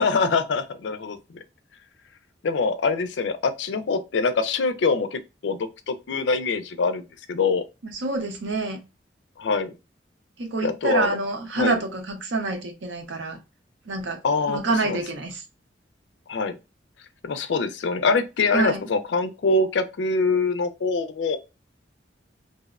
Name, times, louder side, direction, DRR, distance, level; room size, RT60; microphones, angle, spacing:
voice 1, 0.0-1.4 2.4-5.6 5.9-7.0 7.3-7.6 9.4-9.7 10.6-11.2 11.6-11.8 14.2-14.6 14.8-15.0 16.3-16.6 17.2-21.4, left 4 dB, 75° left, 0.4 m, -24 dB
voice 2, 7.8-8.8 10.4-13.4 13.9-14.2 14.5-15.4 18.5-18.8, right 3 dB, 90° right, 0.7 m, -27 dB
2.6 x 2.0 x 2.3 m
head